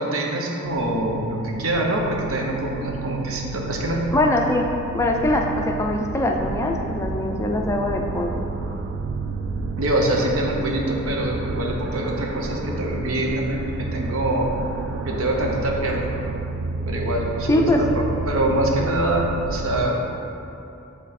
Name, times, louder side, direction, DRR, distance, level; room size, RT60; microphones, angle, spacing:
voice 1, 0.0-4.1 9.8-14.5 15.0-16.1 16.9-20.0, right 1 dB, 90° right, 0 dB, 0.8 m, -24 dB
sound 1, 0.6-19.8, right 3 dB, 60° right, 0.4 m, -31 dB
voice 2, 4.1-8.5 17.5-17.8, left 1 dB, 15° left, 1 dB, 0.4 m, -22 dB
7.6 x 3.3 x 4.2 m, 2.8 s
head